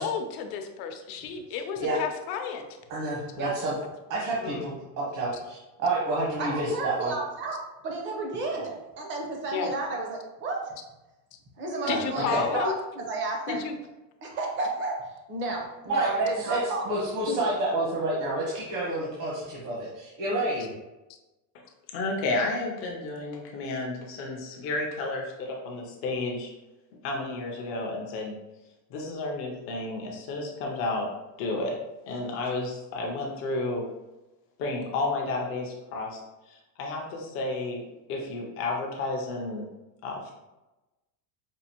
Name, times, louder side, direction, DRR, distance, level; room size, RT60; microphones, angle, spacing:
voice 1, 0.0-2.7 4.4-4.6 9.5-9.7 11.9-12.7 13.5-13.8, left 6 dB, 70° left, 6 dB, 0.7 m, -31 dB
voice 2, 2.9-3.7 4.1-7.1 8.5-8.6 11.8-12.4 15.9-20.7, right 2 dB, 60° right, -5 dB, 1.2 m, -29 dB
voice 3, 6.4-10.7 11.6-13.6 14.2-16.9 17.3-17.4, right 2 dB, 25° right, 1 dB, 0.5 m, -32 dB
voice 4, 21.9-26.5 27.0-28.3 28.9-31.1 31.4-31.7 32.1-33.8 34.6-36.2 36.5-37.8 38.1-39.6 40.0-40.3, left 2 dB, 30° left, 0 dB, 0.4 m, -31 dB
5.2 x 2.4 x 2.8 m, 1.0 s
cardioid pair, 165°, 49 cm